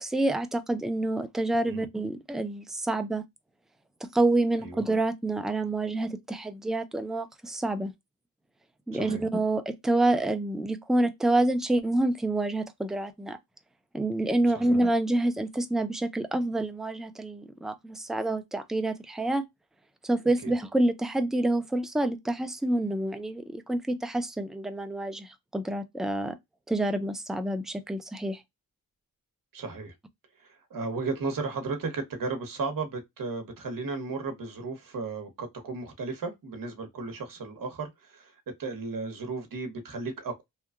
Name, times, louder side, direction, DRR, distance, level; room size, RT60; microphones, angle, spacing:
voice 1, 0.0-3.2 4.0-7.9 8.9-13.4 13.9-19.4 20.0-26.3 26.7-28.4, right 2 dB, ahead, 0.4 m, -27 dB
voice 2, 29.5-29.9 30.7-38.3 38.6-40.4, right 4 dB, 60° right, 0.9 m, -34 dB
2.8 x 2.2 x 2.3 m
cardioid pair, 65°, 37 cm